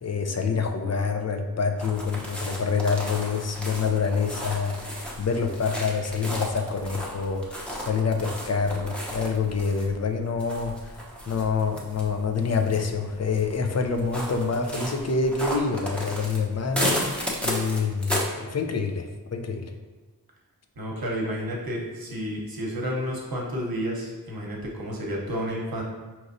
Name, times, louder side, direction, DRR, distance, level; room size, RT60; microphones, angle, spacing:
voice 1, 0.0-17.0 17.4-19.7, left 5 dB, 45° left, 4 dB, 0.4 m, -27 dB
sound 1, 1.8-18.2, equal, 5° left, 0.7 m, -34 dB
voice 2, 20.8-25.8, equal, 70° right, -2 dB, 0.9 m, -31 dB
5.0 x 3.0 x 2.6 m, 1.2 s
wide cardioid pair, 60°, 37 cm